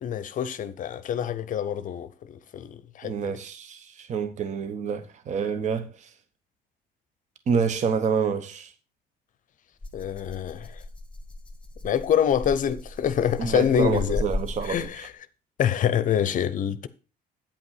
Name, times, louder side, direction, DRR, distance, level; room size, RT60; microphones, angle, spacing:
voice 1, 0.0-3.3 9.9-10.7 11.8-14.2 14.6-15.1 15.6-16.9, left 9 dB, 50° left, 0.6 m, -26 dB
voice 2, 3.0-6.1 7.5-8.7 13.4-15.1, right 6 dB, 45° right, 0.9 m, -28 dB
Rattle (instrument), 9.8-15.1, left 2 dB, 5° left, 1.5 m, -36 dB
8.9 x 5.4 x 5.6 m
cardioid pair, 110°, 17 cm